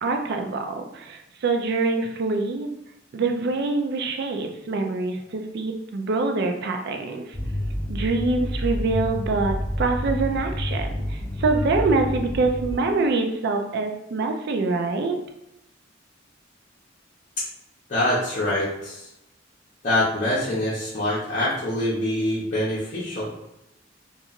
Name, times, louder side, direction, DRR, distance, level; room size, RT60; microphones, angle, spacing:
voice 1, 0.0-2.7 3.1-7.2 7.9-15.2, right 3 dB, 55° right, 4 dB, 0.4 m, -25 dB
sound 1, 7.3-12.8, equal, 10° left, 0.4 m, -28 dB
voice 2, 17.9-19.1 19.8-23.3, left 1 dB, 40° left, -9 dB, 0.7 m, -25 dB
2.9 x 2.4 x 2.4 m, 0.87 s
head